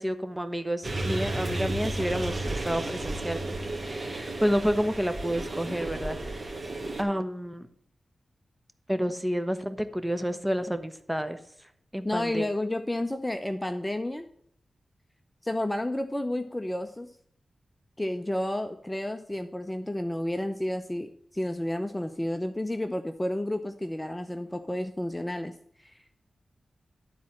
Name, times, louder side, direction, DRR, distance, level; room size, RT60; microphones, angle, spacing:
voice 1, 0.0-6.6 7.0-7.7 8.9-11.4 11.9-12.5, equal, 5° right, 10 dB, 1.1 m, -30 dB
sound 1, 0.8-7.0, right 2 dB, 40° right, 2.1 m, -33 dB
voice 2, 12.0-14.3 15.4-17.1 18.0-25.5 25.8-26.0, left 1 dB, 15° left, 8 dB, 0.7 m, -31 dB
12.0 x 4.2 x 7.5 m, 0.66 s
cardioid pair, 60°, 0 cm